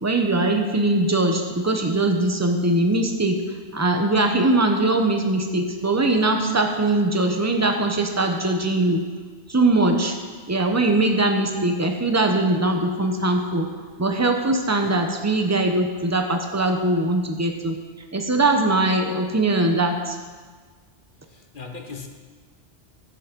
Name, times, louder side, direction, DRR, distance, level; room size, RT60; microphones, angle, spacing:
voice 1, 0.0-3.4 3.7-9.0 9.5-10.2 10.5-13.7 14.0-17.8 18.1-20.2, right 2 dB, 15° right, 4 dB, 0.9 m, -21 dB
voice 2, 21.3-22.1, left 4 dB, 50° left, 4 dB, 1.3 m, -39 dB
14.0 x 7.5 x 5.3 m, 1.5 s
omnidirectional pair, 1.1 m